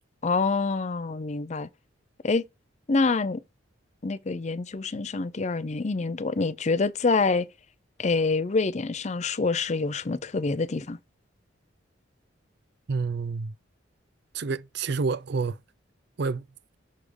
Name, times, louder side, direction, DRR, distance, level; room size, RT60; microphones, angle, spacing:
voice 1, 0.2-1.7 2.2-2.4 2.9-3.4 4.0-7.5 8.0-11.0, left 3 dB, 35° left, 0.5 m, -26 dB
voice 2, 12.9-13.6 14.3-15.6 16.2-16.5, right 4 dB, 60° right, 0.4 m, -28 dB
6.5 x 3.5 x 4.7 m
head